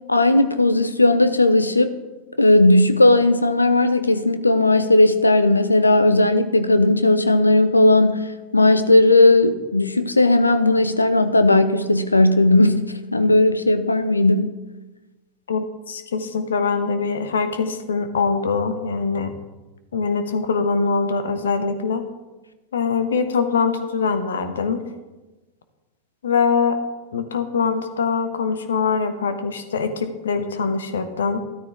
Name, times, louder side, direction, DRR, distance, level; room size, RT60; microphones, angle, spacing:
voice 1, 0.1-1.9 2.4-8.3 8.5-14.5, left 2 dB, 80° left, 11 dB, 0.7 m, -16 dB
voice 2, 15.5-19.3 19.9-22.0 22.7-24.8 26.2-26.8 27.1-31.4, left 5 dB, 65° left, 9 dB, 1.2 m, -23 dB
13.0 x 13.0 x 3.5 m, 1.2 s
figure-of-eight pair, 90°, 0 cm